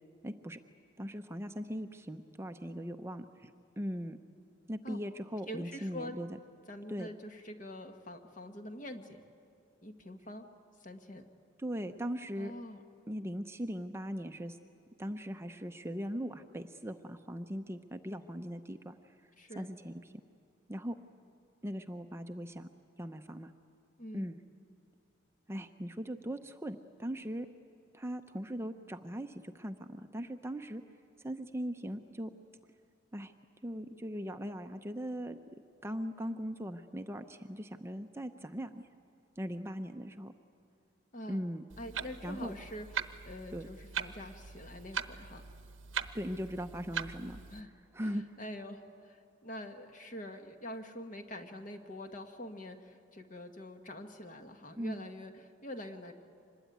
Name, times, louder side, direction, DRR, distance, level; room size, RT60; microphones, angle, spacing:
voice 1, 0.2-0.6 1.0-4.2 4.7-6.3 6.9-7.1 11.6-12.5 13.1-14.6 15.0-18.9 19.5-19.9 20.7-21.0 21.6-22.7 23.0-23.5 24.1-24.3 25.5-27.5 27.9-30.8 31.2-32.3 33.1-33.3 33.6-35.4 35.8-38.8 39.4-40.3 41.3-41.6 42.2-42.5 43.5-43.7 46.1-47.4 47.9-48.2 54.8-55.0, equal, 15° right, 7 dB, 0.6 m, -39 dB
voice 2, 5.5-6.2 6.7-9.2 9.8-10.5 10.8-11.3 12.4-12.8 19.4-19.7 24.0-24.3 41.1-41.4 41.8-45.4 47.5-47.7 48.0-56.1, left 1 dB, 40° left, 6 dB, 1.6 m, -45 dB
Clock, 41.7-47.6, right 7 dB, 80° right, 0.9 m, -41 dB
25.5 x 21.0 x 9.3 m, 2.5 s
head